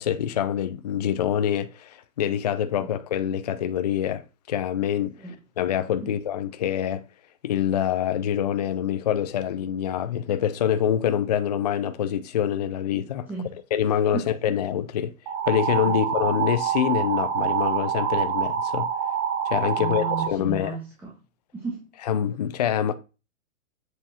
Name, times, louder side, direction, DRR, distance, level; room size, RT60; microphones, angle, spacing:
voice 1, 0.0-4.2 4.5-5.2 5.6-7.0 7.4-13.3 13.7-15.1 15.5-18.9 19.5-20.7 22.1-22.9, left 9 dB, 35° left, 0.4 m, -25 dB
voice 2, 13.3-13.6 14.1-14.3 15.9-16.0 19.8-21.1 21.5-21.9, right 2 dB, 5° right, 1.5 m, -34 dB
sound 1, 15.3-20.3, right 8 dB, 30° right, 1.6 m, -26 dB
7.8 x 5.1 x 4.3 m
hypercardioid pair, 160°, 40 cm